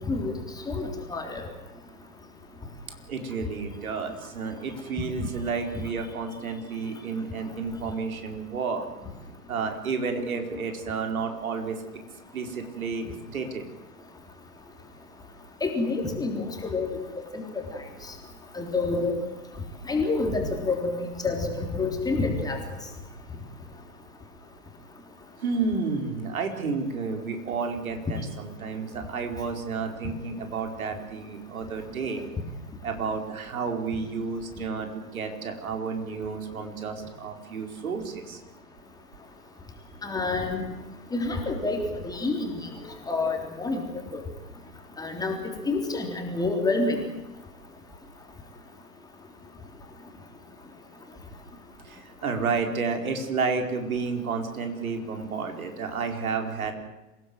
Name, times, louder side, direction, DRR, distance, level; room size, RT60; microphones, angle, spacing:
voice 1, 0.7-1.4 15.6-16.9 17.2-17.6 18.5-19.1 19.9-22.6 40.0-40.7 41.1-42.5 43.1-43.8 44.1-44.2 45.0-45.4 45.7-47.0, left 3 dB, 10° left, 2 dB, 3.4 m, -28 dB
voice 2, 3.1-8.9 9.5-11.8 12.3-13.7 25.4-32.3 32.8-38.4 51.8-56.7, right 5 dB, 60° right, 5 dB, 4.6 m, -31 dB
26.5 x 17.5 x 8.0 m, 1.1 s
figure-of-eight pair, 120°, 47 cm